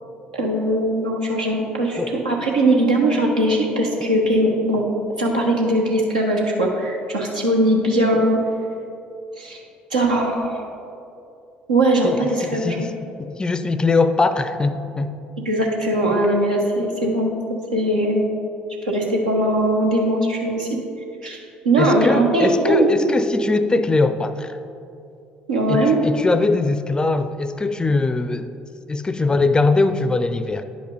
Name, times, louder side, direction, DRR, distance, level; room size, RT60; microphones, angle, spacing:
voice 1, 0.3-4.9 5.2-8.4 9.4-9.6 9.9-10.7 11.7-12.9 15.4-18.2 18.8-20.7 21.2-21.4 21.6-22.9 25.5-26.0, right 1 dB, 85° right, -1 dB, 1.0 m, -20 dB
voice 2, 12.0-12.9 13.2-15.1 21.8-24.6 25.7-28.5 28.9-30.6, left 3 dB, 20° left, 11 dB, 0.4 m, -21 dB
10.0 x 5.3 x 4.0 m, 2.5 s
figure-of-eight pair, 55°, 4 cm